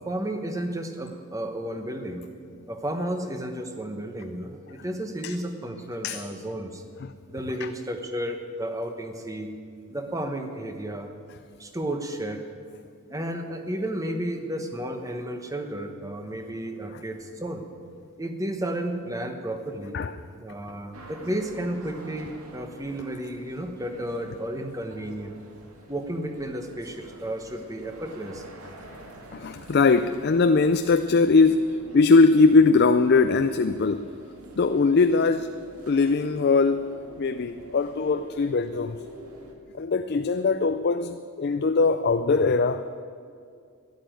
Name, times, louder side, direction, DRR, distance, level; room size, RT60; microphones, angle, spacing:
voice 1, 0.0-2.3 2.7-6.8 7.3-9.5 9.9-11.1 11.6-12.4 13.1-17.6 18.2-20.0 20.4-25.4 25.9-28.4, right 1 dB, 15° right, 1.0 m, -32 dB
sound 1, 20.9-39.6, right 1 dB, 85° right, 1.9 m, -46 dB
voice 2, 29.3-31.7 31.9-34.1 34.6-35.5 35.9-36.9 37.2-39.0 39.8-42.8, left 4 dB, 45° left, 0.4 m, -21 dB
12.5 x 11.0 x 9.0 m
head